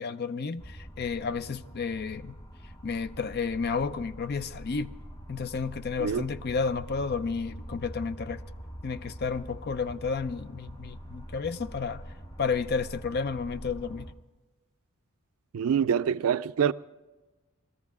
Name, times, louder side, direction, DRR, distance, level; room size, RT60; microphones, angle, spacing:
voice 1, 0.0-2.3 2.8-4.9 5.3-8.4 8.8-12.0 12.4-14.1, left 5 dB, 50° left, 0.4 m, -31 dB
sound 1, 0.6-14.1, equal, 20° left, 0.7 m, -44 dB
voice 2, 15.5-16.7, right 7 dB, 75° right, 0.4 m, -25 dB
19.0 x 13.5 x 3.5 m
head